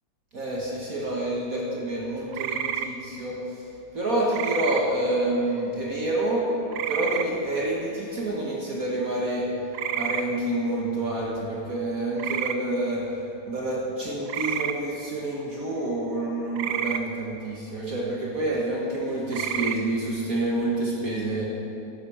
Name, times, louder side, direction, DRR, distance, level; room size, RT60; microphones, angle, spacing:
voice 1, 0.3-3.4 3.9-6.4 6.9-9.5 9.9-13.1 13.5-21.5, right 1 dB, 50° right, -4 dB, 1.9 m, -28 dB
sound 1, 2.3-2.9 4.3-4.8 6.7-7.3 9.7-10.2 12.2-12.6 14.3-14.7 16.6-17.0 19.3-19.8, right 9 dB, 70° right, 1.2 m, -29 dB
13.0 x 12.0 x 4.9 m, 2.7 s
omnidirectional pair, 1.9 m